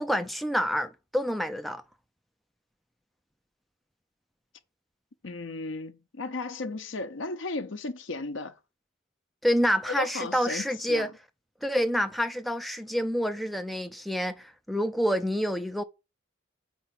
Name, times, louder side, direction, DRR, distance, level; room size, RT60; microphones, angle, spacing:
voice 1, 0.0-1.8 9.4-11.1 11.6-15.8, equal, ahead, 0.4 m, -28 dB
voice 2, 5.2-8.5 10.0-11.1, left 3 dB, 70° left, 0.8 m, -35 dB
4.7 x 4.3 x 5.8 m
head